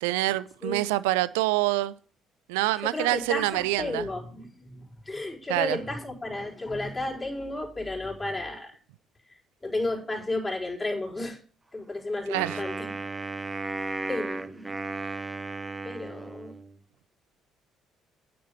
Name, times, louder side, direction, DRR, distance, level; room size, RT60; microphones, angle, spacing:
voice 1, 0.0-1.9 2.5-4.1 5.5-5.8 12.3-12.6, right 17 dB, 75° right, 0.4 m, -26 dB
voice 2, 2.7-8.8 9.6-11.4 11.7-12.9 14.1-14.7 15.8-16.5, left 2 dB, 20° left, 4.2 m, -33 dB
Wind instrument woodwind instrument, 12.3-16.8, right 3 dB, 20° right, 0.9 m, -35 dB
9.5 x 6.9 x 6.7 m
figure-of-eight pair, 50°, 0 cm